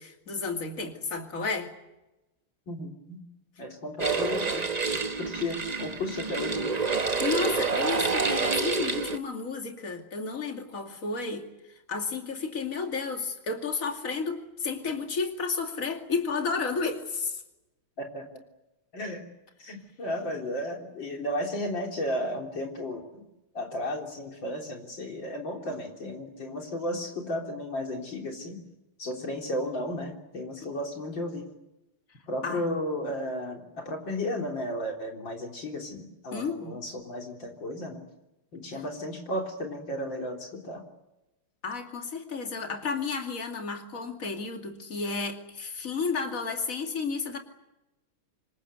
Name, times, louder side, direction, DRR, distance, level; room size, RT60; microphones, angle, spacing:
voice 1, 0.0-1.7 6.9-11.5 11.9-17.4 32.4-32.6 36.3-36.8 41.6-47.4, left 4 dB, 40° left, 4 dB, 2.9 m, -32 dB
voice 2, 2.7-3.2 3.6-4.6 4.9-6.7 18.0-18.3 18.9-19.2 19.6-23.3 23.5-28.6 29.0-31.5 32.3-38.0 38.5-40.8, left 1 dB, 60° left, 2 dB, 4.3 m, -34 dB
sound 1, 4.0-9.2, right 4 dB, 30° right, 0.7 m, -28 dB
26.5 x 23.0 x 8.3 m, 0.97 s
omnidirectional pair, 2.3 m